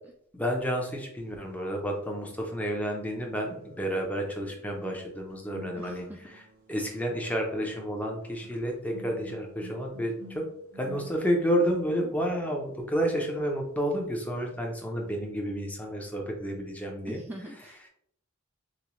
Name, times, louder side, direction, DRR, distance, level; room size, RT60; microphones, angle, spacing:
voice 1, 0.3-10.5 10.7-17.2, equal, 5° left, 1 dB, 0.7 m, -30 dB
sound 1, 2.1-2.2 3.5-14.6 14.8-15.1, left 1 dB, 85° right, 1.1 m, -51 dB
voice 2, 5.7-6.2 17.1-17.9, right 1 dB, 10° right, 1 dB, 0.3 m, -43 dB
6.7 x 2.3 x 3.1 m, 0.71 s
head